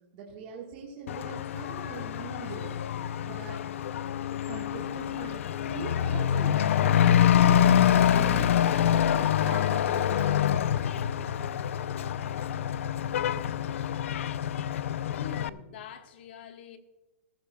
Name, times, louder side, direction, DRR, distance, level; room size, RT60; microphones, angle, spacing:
voice 1, 0.1-2.8 3.2-3.7 4.5-10.4, right 6 dB, 35° right, -2 dB, 1.5 m, -43 dB
Truck / Accelerating revving vroom, 1.1-15.5, left 9 dB, 65° left, 0.4 m, -26 dB
voice 2, 15.1-16.8, left 7 dB, 50° left, 7 dB, 1.2 m, -45 dB
17.0 x 14.0 x 2.2 m, 1.1 s
hypercardioid pair, 175°, 8 cm